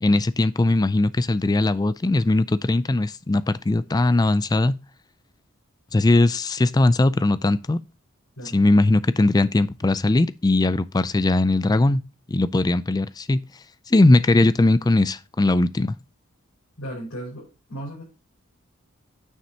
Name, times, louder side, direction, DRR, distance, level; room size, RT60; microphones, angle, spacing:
voice 1, 0.0-4.7 5.9-7.8 8.4-12.0 12.3-13.4 13.9-16.0, left 2 dB, 15° left, 0.3 m, -19 dB
voice 2, 16.8-18.0, right 1 dB, 65° left, 5.2 m, -36 dB
9.3 x 7.1 x 2.8 m
head